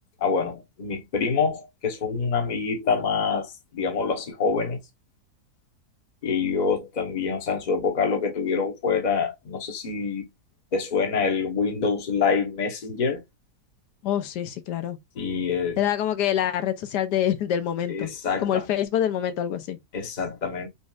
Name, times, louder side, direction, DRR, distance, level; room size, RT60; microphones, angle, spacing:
voice 1, 0.2-4.8 6.2-10.3 10.7-13.2 15.2-15.8 17.9-18.6 19.9-20.7, left 5 dB, 35° left, 0.9 m, -26 dB
voice 2, 14.0-15.0 15.8-18.1 18.4-19.8, left 10 dB, 85° left, 1.3 m, -26 dB
5.4 x 3.2 x 2.4 m
omnidirectional pair, 1.7 m